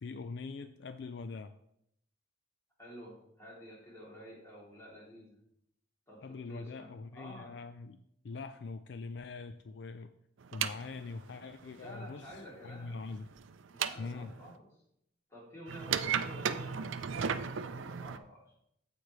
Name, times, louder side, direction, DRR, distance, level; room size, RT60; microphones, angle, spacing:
voice 1, 0.0-1.5 6.2-10.1 10.5-12.4 12.6-13.3 14.0-14.3, left 4 dB, 60° left, 9 dB, 0.4 m, -43 dB
voice 2, 2.8-5.4 6.1-7.6 11.7-13.0 13.7-14.7 15.3-18.6, equal, 15° left, -5 dB, 2.8 m, -50 dB
sound 1, 10.4-14.5 15.7-18.2, right 7 dB, 75° right, 0.5 m, -36 dB
14.5 x 5.0 x 3.1 m, 0.74 s
head